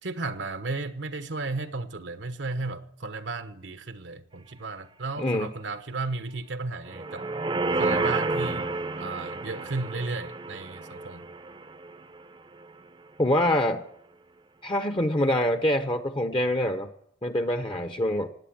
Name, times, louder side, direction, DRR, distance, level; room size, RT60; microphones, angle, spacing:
voice 1, 0.0-7.3 7.8-8.7 9.0-11.3 17.7-17.8, right 3 dB, 80° right, 1.1 m, -34 dB
voice 2, 5.2-5.5 13.2-13.8 14.6-16.9 17.2-18.3, left 1 dB, 25° left, 0.8 m, -25 dB
sound 1, 6.9-12.2 12.6-12.7, right 3 dB, 25° right, 0.6 m, -30 dB
17.5 x 9.2 x 8.7 m
head